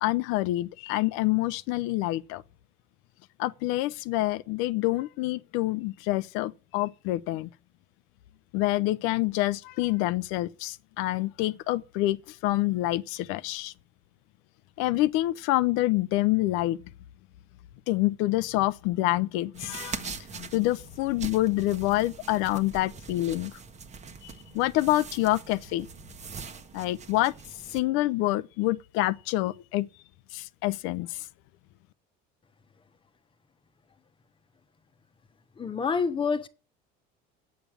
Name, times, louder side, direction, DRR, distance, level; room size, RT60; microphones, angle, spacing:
voice 1, 0.0-2.4 3.4-7.5 8.5-13.7 14.8-16.8 17.9-23.5 24.2-25.9 26.7-27.3 27.7-29.9 30.3-31.2, left 17 dB, 75° left, 0.6 m, -27 dB
sound 1, 19.5-27.8, right 5 dB, 35° right, 1.1 m, -42 dB
voice 2, 35.6-36.5, left 5 dB, 25° left, 1.1 m, -27 dB
8.5 x 7.2 x 8.7 m
cardioid pair, 115°, 21 cm